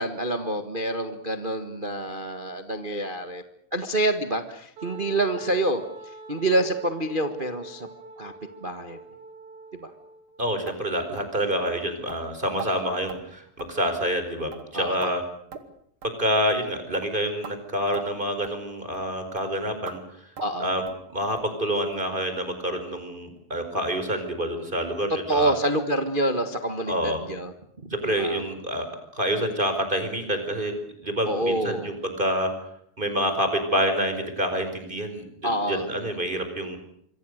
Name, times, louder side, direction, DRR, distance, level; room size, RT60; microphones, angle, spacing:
voice 1, 0.0-3.4 3.7-5.8 6.3-7.9 8.2-8.3 8.6-9.0 9.8-9.9 14.7-15.0 20.4-20.7 25.1-27.5 27.8-28.4 31.2-31.9 35.4-35.9, right 1 dB, 60° right, 8 dB, 0.5 m, -27 dB
Wind instrument woodwind instrument, 4.8-10.4, right 3 dB, 80° right, 5.9 m, -44 dB
voice 2, 10.4-15.2 16.0-20.0 20.6-20.8 21.1-25.5 26.9-27.2 27.9-28.9 29.1-30.7 31.0-32.5 33.0-36.8, equal, 15° right, 7 dB, 4.7 m, -27 dB
sound 1, 10.7-10.8 11.2-11.3 11.7-11.8 12.1-12.2 12.6-12.7 13.1-13.2 13.6-13.8 14.1-14.2 14.5-15.1 15.5-15.7 16.0-16.2 16.5-16.7 16.9-17.1 17.4-17.6 17.9-18.1 18.4-18.6 18.9-19.1 19.4-19.5 19.9-20.0 20.4-20.6 20.9-21.0 21.4-21.5 21.9-22.0 22.4-22.5 22.9-23.0, right 6 dB, 40° right, 2.7 m, -41 dB
27.0 x 24.0 x 6.6 m, 0.69 s
omnidirectional pair, 4.1 m